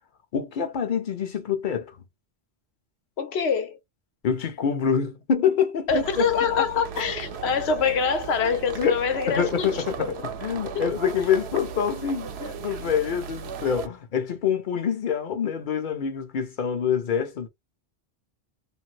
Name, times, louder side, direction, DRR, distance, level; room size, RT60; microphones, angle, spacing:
voice 1, 0.3-1.9 4.2-6.7 8.8-9.0 9.3-17.5, left 7 dB, 55° left, 0.8 m, -26 dB
voice 2, 3.2-3.8 5.9-10.1 10.7-11.0, left 6 dB, 85° left, 1.0 m, -25 dB
sound 1, 5.9-13.9, right 6 dB, 85° right, 0.8 m, -36 dB
2.7 x 2.5 x 2.8 m
omnidirectional pair, 1.0 m